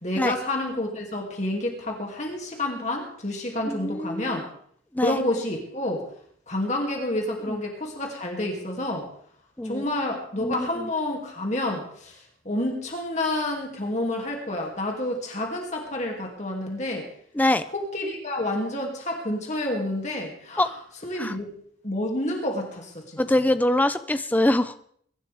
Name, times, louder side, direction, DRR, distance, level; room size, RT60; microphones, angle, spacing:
voice 1, 0.0-4.5 5.0-6.0 6.5-9.1 9.6-17.1 17.7-20.7 21.0-21.5 21.8-23.2, left 1 dB, 35° left, 1 dB, 2.6 m, -29 dB
voice 2, 3.7-4.4 4.9-5.2 7.5-7.6 9.6-9.8 10.4-10.9 17.3-17.6 20.6-20.7 21.2-21.4 23.2-24.9, left 1 dB, 10° left, 12 dB, 0.5 m, -24 dB
22.5 x 12.0 x 3.5 m, 0.64 s
head